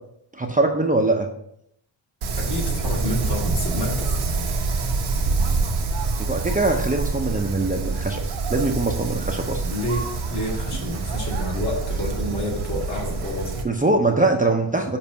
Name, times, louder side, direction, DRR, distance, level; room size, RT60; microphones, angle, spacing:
voice 1, 0.3-1.3 6.2-8.2 8.5-9.6 13.6-15.0, right 2 dB, 15° right, 2 dB, 0.6 m, -22 dB
Wind, 2.2-13.6, right 3 dB, 85° right, 1.2 m, -26 dB
voice 2, 2.4-4.1 9.6-13.5, equal, 55° left, -3 dB, 2.2 m, -29 dB
7.1 x 2.6 x 5.6 m, 0.73 s
cardioid pair, 85°, 48 cm